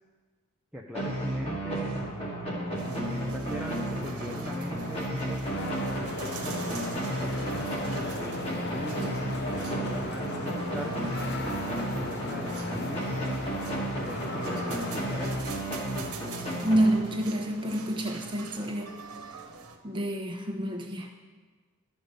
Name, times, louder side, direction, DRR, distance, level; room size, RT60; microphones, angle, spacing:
voice 1, 0.7-2.0 2.8-5.7 6.4-7.7 7.9-11.1 11.6-13.1 14.0-15.4, equal, 5° right, -3 dB, 0.6 m, -41 dB
sound 1, 0.9-17.5, right 1 dB, 25° left, 2.0 m, -33 dB
sound 2, 2.8-19.8, right 4 dB, 85° right, 1.1 m, -45 dB
sound 3, 5.4-15.4, left 2 dB, 45° left, 0.8 m, -37 dB
voice 2, 16.6-18.9 19.8-21.1, right 1 dB, 20° right, 1 dB, 1.1 m, -28 dB
12.5 x 5.2 x 6.7 m, 1.4 s
head